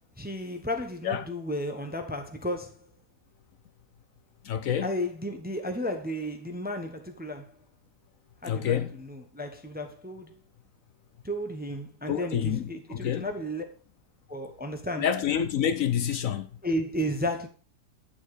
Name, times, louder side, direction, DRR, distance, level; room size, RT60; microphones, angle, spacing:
voice 1, 0.2-2.8 4.8-7.5 8.4-10.3 11.2-13.6 14.3-15.1 16.6-17.5, equal, 10° right, 0.8 m, -33 dB
voice 2, 4.4-4.9 8.4-8.9 12.1-13.3 15.0-16.5, left 9 dB, 65° left, 1.0 m, -28 dB
8.8 x 7.3 x 4.8 m
omnidirectional pair, 1.7 m